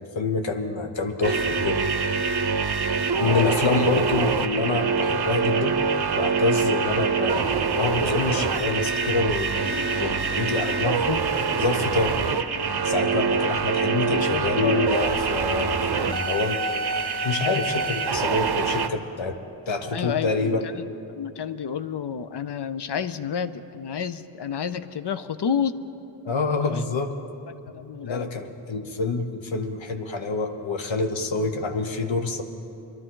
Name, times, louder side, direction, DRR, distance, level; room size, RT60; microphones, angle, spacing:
voice 1, 0.0-1.8 3.2-5.8 6.1-12.2 12.8-16.6 17.2-19.4 19.7-20.6 26.2-27.1 28.0-32.4, left 3 dB, 80° left, 5 dB, 1.1 m, -27 dB
sound 1, 1.2-18.9, right 5 dB, 60° right, 0.7 m, -25 dB
voice 2, 3.2-3.9 14.0-14.8 19.9-20.9 21.1-25.8 26.5-26.8 27.7-28.3 31.4-31.5, left 7 dB, 65° left, 12 dB, 0.6 m, -30 dB
sound 2, 9.5-14.9, left 3 dB, 45° left, 2.4 m, -41 dB
23.0 x 12.0 x 3.8 m, 2.8 s
wide cardioid pair, 60°, 45 cm